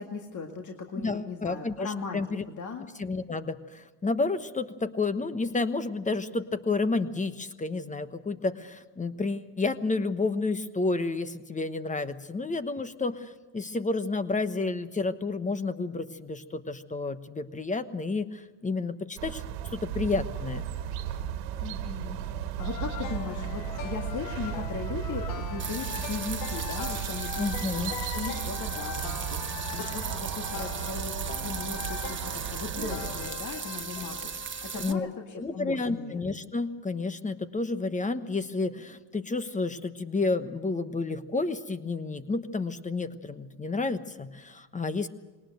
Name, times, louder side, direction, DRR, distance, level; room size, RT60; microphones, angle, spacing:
voice 1, 0.0-2.9 21.6-22.2 22.6-36.2, left 5 dB, 35° left, 3 dB, 2.0 m, -38 dB
voice 2, 1.0-2.4 3.0-19.4 19.7-20.7 27.4-28.0 34.7-35.1 35.4-45.1, left 3 dB, 15° left, 12 dB, 1.1 m, -30 dB
sound 1, 19.2-33.3, right 9 dB, 85° right, 2.0 m, -35 dB
sound 2, 22.6-34.9, left 11 dB, 80° left, 1.3 m, -41 dB
sound 3, 25.6-34.9, right 7 dB, 25° right, 1.2 m, -37 dB
20.5 x 19.0 x 7.8 m, 1.2 s
supercardioid pair, 100°, 49 cm